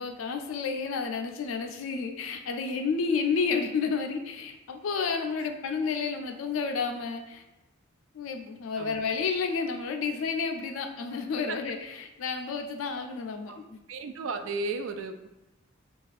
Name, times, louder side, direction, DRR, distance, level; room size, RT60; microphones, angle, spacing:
voice 1, 0.0-7.4 8.1-13.8, left 5 dB, 75° left, 5 dB, 0.4 m, -31 dB
voice 2, 13.9-15.3, right 3 dB, 70° right, 8 dB, 0.3 m, -34 dB
2.4 x 2.3 x 4.0 m, 0.92 s
head